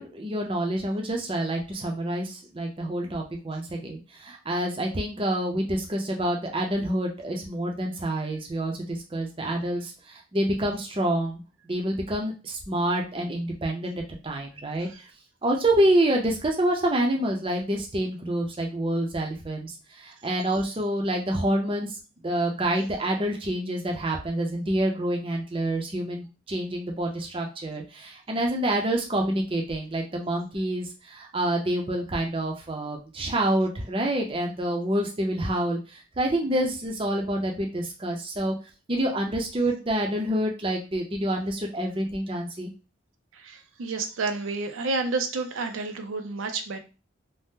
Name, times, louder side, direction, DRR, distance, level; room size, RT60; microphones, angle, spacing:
voice 1, 0.0-14.9 15.4-22.0 22.2-38.5 38.9-42.7, right 1 dB, 25° right, 0.5 m, -27 dB
voice 2, 43.4-46.8, right 3 dB, 80° right, 0.4 m, -30 dB
2.7 x 2.0 x 3.5 m
head